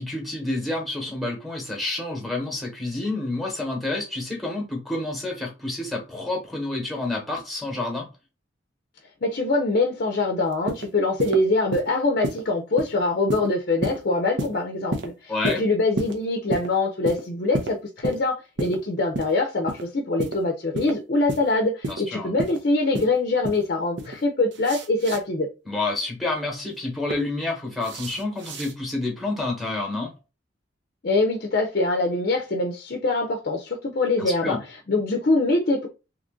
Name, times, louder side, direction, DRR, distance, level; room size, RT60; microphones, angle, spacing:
voice 1, 0.0-8.1 15.3-15.6 22.1-22.3 25.7-30.1 34.2-34.6, left 2 dB, ahead, 1.0 m, -29 dB
voice 2, 9.2-25.5 31.0-35.9, left 2 dB, 50° left, 0.5 m, -24 dB
sound 1, 10.5-10.9 11.2-11.4 11.7-11.9 12.2-12.4 12.8-12.9 13.3-13.5 13.8-14.0 14.4-14.6 14.9-15.1 15.4-15.6 16.0-16.2 16.5-16.7 17.1-17.2 17.5-17.7 18.0-18.2 18.6-18.8 19.1-19.3 19.7-19.8 20.2-20.4 20.7-20.9 21.3-21.4 21.8-22.0 22.4-22.6 22.9-23.1 23.4-23.6 24.0-24.2 24.5-25.2 26.6-27.1 27.8-28.7, right 2 dB, 70° right, 0.7 m, -30 dB
2.9 x 2.5 x 3.6 m
head